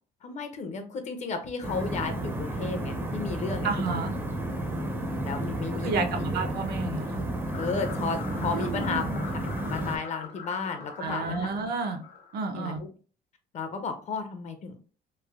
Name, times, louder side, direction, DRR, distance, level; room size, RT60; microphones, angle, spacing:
voice 1, 0.2-4.1 5.2-6.2 7.5-9.0 9.7-11.5 12.5-12.9 13.5-14.7, left 5 dB, 40° left, 7 dB, 0.5 m, -33 dB
sound 1, 1.6-10.0, right 1 dB, 10° right, 0.5 m, -32 dB
voice 2, 3.6-4.1 5.8-7.2 8.5-9.0 11.0-12.0 12.3-12.8, right 4 dB, 60° right, 6 dB, 0.6 m, -31 dB
sound 2, 7.5-12.5, left 5 dB, 65° left, 1.1 m, -43 dB
3.1 x 2.0 x 2.3 m, 0.37 s
cardioid pair, 145°, 18 cm